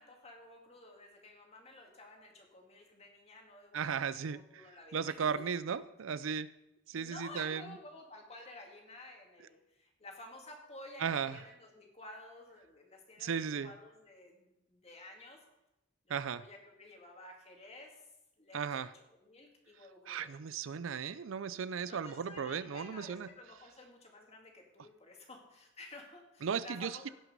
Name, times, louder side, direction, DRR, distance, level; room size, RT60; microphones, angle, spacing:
voice 1, 0.0-5.1 6.9-15.4 16.1-18.0 18.4-20.3 21.8-27.1, left 2 dB, 30° left, 1 dB, 2.2 m, -53 dB
voice 2, 3.7-4.7 4.9-6.5 6.9-7.6 11.0-11.4 13.2-13.7 16.1-16.4 18.5-18.9 20.1-23.3 26.4-27.1, right 6 dB, 80° right, 16 dB, 0.5 m, -36 dB
17.0 x 5.9 x 5.4 m, 0.91 s
head